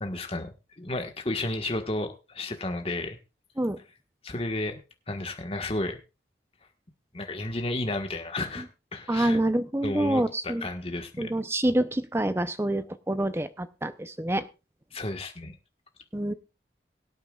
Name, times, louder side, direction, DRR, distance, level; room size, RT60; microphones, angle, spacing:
voice 1, 0.0-3.2 4.2-4.8 5.1-6.0 7.1-9.4 9.8-11.3 14.9-15.5, left 2 dB, 30° left, 5 dB, 1.5 m, -32 dB
voice 2, 9.1-10.7 11.2-14.4 16.1-16.3, right 1 dB, 15° right, 11 dB, 0.7 m, -27 dB
22.5 x 8.8 x 2.4 m, 0.30 s
head